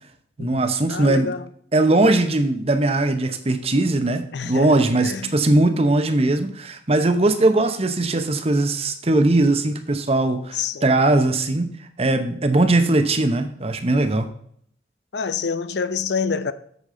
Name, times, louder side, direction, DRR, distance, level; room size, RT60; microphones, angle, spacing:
voice 1, 0.4-1.3 1.7-11.7 12.0-14.3, right 2 dB, 30° right, 0.8 m, -20 dB
voice 2, 0.9-1.4 4.3-4.8 5.0-5.3 10.5-10.8 15.1-16.5, left 5 dB, 65° left, 0.5 m, -27 dB
8.2 x 7.3 x 3.8 m
head